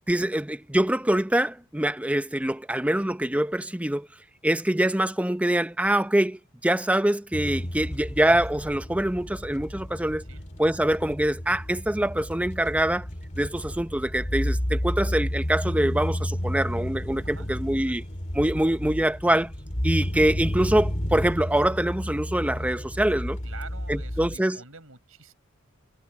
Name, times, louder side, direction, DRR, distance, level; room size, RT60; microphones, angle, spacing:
voice 1, 0.1-4.1 4.4-10.2 10.6-13.1 13.4-18.0 18.3-19.5 19.8-23.4 23.9-24.6, right 1 dB, 5° right, 0.7 m, -24 dB
sound 1, 7.3-24.4, equal, 35° left, 2.4 m, -31 dB
voice 2, 23.4-25.3, right 4 dB, 75° right, 5.6 m, -46 dB
head